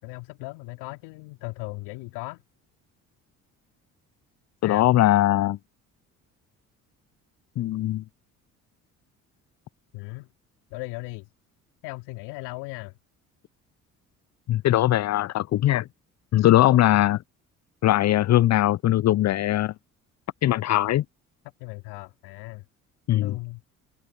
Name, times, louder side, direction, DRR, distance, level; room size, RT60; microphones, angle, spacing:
voice 1, 0.0-2.4 4.6-4.9 9.9-10.3 10.7-11.3 11.8-12.9 16.5-17.1 21.4-22.7 23.2-23.6, left 24 dB, 70° left, 4.1 m, -37 dB
voice 2, 4.6-5.6 7.6-8.0 14.5-15.8 16.3-17.2 17.8-19.7 20.4-21.0 23.1-23.3, left 14 dB, 40° left, 0.6 m, -20 dB
hypercardioid pair, 50°, 41 cm